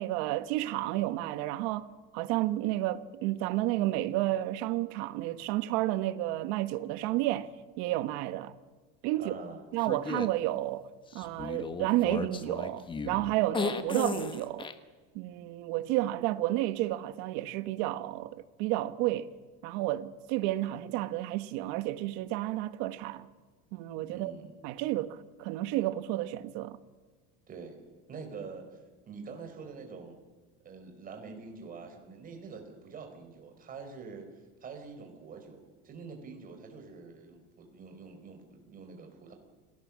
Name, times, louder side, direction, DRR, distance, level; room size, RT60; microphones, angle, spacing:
voice 1, 0.0-1.9 2.1-7.5 7.8-8.5 9.0-9.3 9.7-10.9 11.1-14.7 15.1-19.3 19.6-23.3 23.7-24.3 24.6-26.8, right 16 dB, 70° right, 1.4 m, -31 dB
voice 2, 9.2-9.6 24.1-24.5 27.5-27.8 28.1-28.8 29.1-30.1 30.6-34.3 34.6-39.3, right 5 dB, 30° right, 4.9 m, -45 dB
sound 1, 9.8-10.3 11.1-14.7, left 5 dB, 15° left, 1.3 m, -35 dB
28.5 x 18.5 x 7.5 m
cardioid pair, 155°, 30 cm